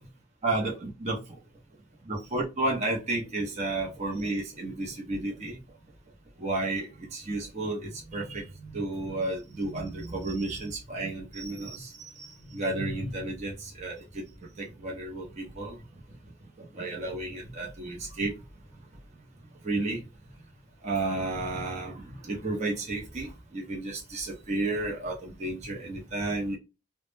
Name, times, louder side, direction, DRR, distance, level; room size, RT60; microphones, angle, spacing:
voice 1, 0.4-1.2 2.1-5.6 6.4-14.2 14.6-15.8 16.6-18.3 19.6-20.0 20.8-26.6, right 2 dB, 35° right, 0.6 m, -32 dB
2.1 x 2.0 x 3.1 m
head